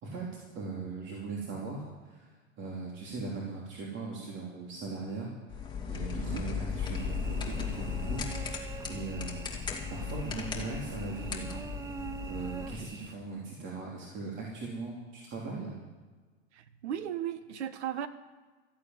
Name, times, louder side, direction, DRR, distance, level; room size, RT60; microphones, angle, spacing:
voice 1, 0.0-2.3 2.6-9.5 9.9-15.8, right 3 dB, 35° right, -3 dB, 3.3 m, -40 dB
sound 1, 5.5-12.8, left 5 dB, 15° left, 2.5 m, -36 dB
Cricket / Buzz, 6.9-13.1, right 6 dB, 10° right, 0.4 m, -45 dB
voice 2, 16.5-18.1, right 10 dB, 85° right, 11 dB, 1.3 m, -36 dB
14.5 x 8.8 x 9.3 m, 1.3 s
supercardioid pair, 125°, 33 cm